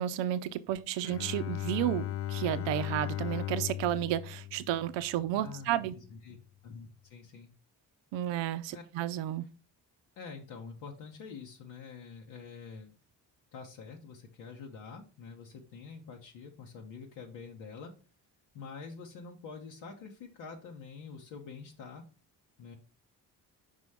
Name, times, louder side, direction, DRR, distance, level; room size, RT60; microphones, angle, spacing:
voice 1, 0.0-5.9 8.1-9.5, right 12 dB, 85° right, 0.5 m, -32 dB
Bowed string instrument, 1.0-5.5, left 12 dB, 35° left, 0.4 m, -37 dB
voice 2, 5.3-6.4 6.6-7.5 8.7-8.8 10.2-13.0 13.5-17.9 18.5-22.0 22.6-22.8, left 5 dB, 85° left, 1.1 m, -46 dB
5.3 x 4.1 x 4.7 m
supercardioid pair, 60°, 43 cm